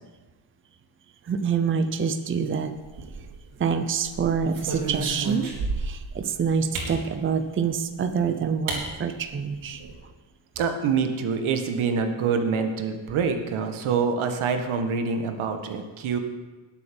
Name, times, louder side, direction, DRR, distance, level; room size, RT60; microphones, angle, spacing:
voice 1, 1.2-2.8 3.6-9.8, right 6 dB, 25° right, 8 dB, 0.7 m, -26 dB
sound 1, 2.8-3.5 4.1-6.1 6.7-7.0 8.1-8.2 8.7-8.8 9.2-9.3 9.5-9.9, right 3 dB, 75° right, 4.0 m, -31 dB
voice 2, 10.6-16.2, right 5 dB, 90° right, 6 dB, 1.7 m, -26 dB
19.5 x 8.3 x 5.3 m, 1.3 s
cardioid pair, 170°, 47 cm